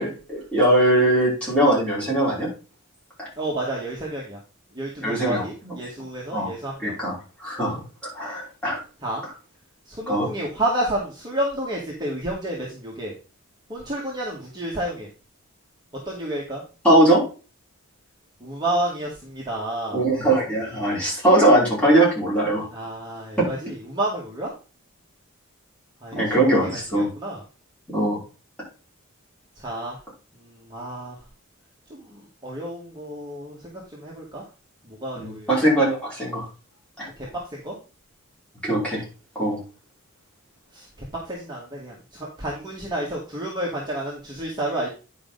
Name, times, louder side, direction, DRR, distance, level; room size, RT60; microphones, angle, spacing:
voice 1, 0.0-2.5 3.2-3.3 5.0-5.7 6.3-6.5 6.8-7.1 7.4-7.8 8.1-8.8 10.1-10.3 16.8-17.2 19.9-22.7 23.4-23.5 26.1-27.1 27.9-28.2 35.2-36.4 37.0-37.1 38.6-39.0 39.3-39.6, right 1 dB, 5° left, -6 dB, 4.9 m, -20 dB
voice 2, 3.3-4.4 4.7-7.0 9.0-9.2 9.9-13.1 13.7-15.1 16.1-16.6 18.4-20.0 22.7-24.5 26.0-27.4 29.6-30.0 30.4-31.2 31.9-34.4 34.8-35.5 37.2-37.7 40.7-40.9 41.3-44.9, right 1 dB, 20° right, -4 dB, 1.8 m, -30 dB
9.7 x 5.3 x 3.9 m, 0.34 s
head